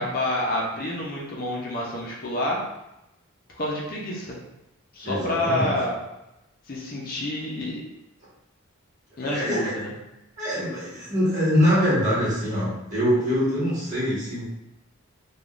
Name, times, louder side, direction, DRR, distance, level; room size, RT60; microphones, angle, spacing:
voice 1, 0.0-2.6 3.6-4.4 4.9-5.9 6.7-7.8 9.2-9.9, left 1 dB, 45° left, -4 dB, 0.5 m, -28 dB
voice 2, 5.0-5.7 9.2-9.7 10.4-14.4, equal, 35° right, -9 dB, 1.3 m, -24 dB
3.4 x 2.3 x 2.4 m, 0.92 s
head